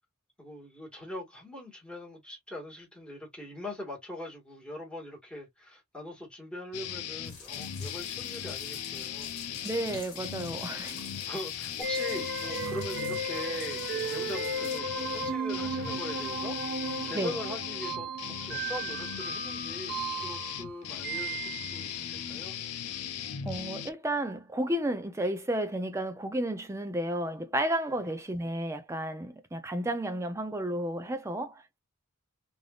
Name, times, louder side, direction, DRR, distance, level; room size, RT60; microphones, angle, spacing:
voice 1, 0.4-9.4 11.3-18.1 18.4-22.6 27.9-28.0, left 1 dB, 5° left, 1.6 m, -42 dB
sound 1, 6.7-23.9, left 9 dB, 85° left, 0.6 m, -38 dB
sound 2, 7.2-14.8, left 5 dB, 65° left, 1.4 m, -49 dB
voice 2, 9.6-11.1 17.1-17.3 23.4-31.8, right 1 dB, 15° right, 0.4 m, -32 dB
sound 3, 11.8-22.0, right 3 dB, 50° right, 1.0 m, -35 dB
3.4 x 2.6 x 2.3 m
head